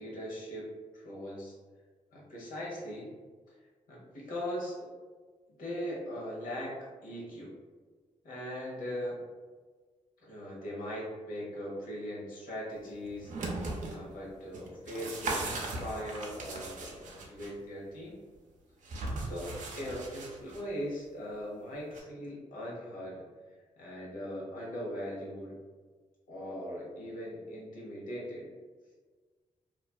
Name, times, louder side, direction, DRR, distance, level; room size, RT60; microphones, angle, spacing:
voice 1, 0.0-1.6 2.1-3.1 3.9-4.9 5.6-7.6 8.2-9.2 10.2-13.3 13.9-18.1 19.2-23.2 23.8-25.6 26.3-28.5, equal, 85° left, -5 dB, 0.9 m, -40 dB
sound 1, 13.1-14.0 14.5-17.5 18.8-20.6 21.9-22.0, right 2 dB, 65° right, 0.5 m, -38 dB
2.4 x 2.3 x 2.3 m, 1.4 s
cardioid pair, 55°, 14 cm